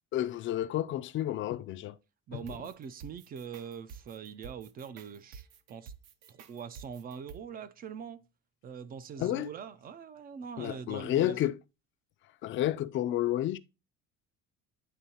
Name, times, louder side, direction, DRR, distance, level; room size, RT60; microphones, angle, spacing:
voice 1, 0.1-2.0 2.3-2.4 9.2-9.5 10.6-11.6 12.4-13.6, left 13 dB, 40° left, 0.4 m, -30 dB
voice 2, 2.3-5.9 6.3-8.2 8.6-11.5, right 7 dB, 30° right, 0.4 m, -43 dB
sound 1, 2.5-7.4, right 6 dB, 55° right, 0.7 m, -50 dB
9.4 x 3.7 x 2.7 m
cardioid pair, 155°, 30 cm